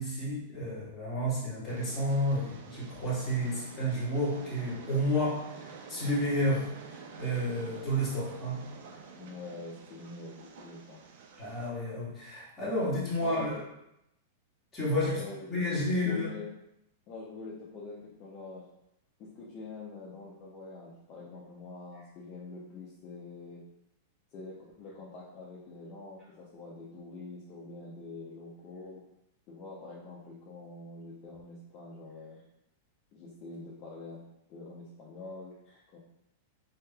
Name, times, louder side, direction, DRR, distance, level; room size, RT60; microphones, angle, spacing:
voice 1, 0.0-8.7 11.4-13.5 14.7-15.2 15.5-16.3, equal, 20° left, -8 dB, 1.4 m, -31 dB
Train, 1.7-11.7, right 5 dB, 65° right, 0.4 m, -48 dB
voice 2, 9.2-11.0 13.2-13.6 14.9-15.5 15.9-16.5 17.1-18.7 19.2-23.6 24.3-29.0 29.5-32.4 33.1-34.2 34.5-36.0, left 3 dB, 40° left, -5 dB, 0.6 m, -45 dB
3.1 x 2.8 x 2.3 m, 0.82 s
hypercardioid pair, 130°, 0 cm